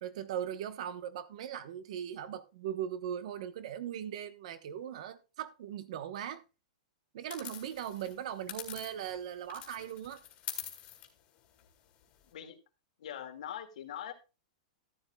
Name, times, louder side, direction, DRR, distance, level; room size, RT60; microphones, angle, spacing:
voice 1, 0.0-6.4 7.1-10.2, right 10 dB, 60° right, 1.1 m, -39 dB
sound 1, 7.3-9.2 9.5-12.3, left 12 dB, 30° left, 2.1 m, -45 dB
voice 2, 13.0-14.1, left 10 dB, 70° left, 2.0 m, -42 dB
14.0 x 9.2 x 2.3 m
supercardioid pair, 155°, 4 cm